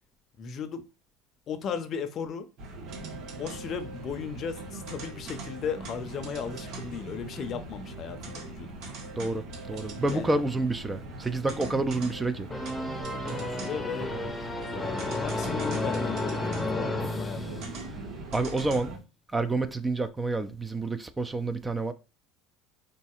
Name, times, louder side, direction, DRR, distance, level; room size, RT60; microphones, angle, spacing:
voice 1, 0.4-0.8 1.5-2.5 3.4-8.8 10.1-10.3 13.1-14.1 14.7-17.8, left 7 dB, 45° left, 0.6 m, -36 dB
sound 1, 2.6-19.0, right 2 dB, 60° right, 1.0 m, -40 dB
voice 2, 9.2-12.5 14.1-14.3 16.9-17.0 18.3-19.0 19.3-21.9, right 2 dB, 15° right, 0.4 m, -29 dB
sound 2, 12.5-18.2, left 2 dB, 10° left, 0.8 m, -32 dB
3.9 x 2.6 x 2.4 m
hypercardioid pair, 85°, 0 cm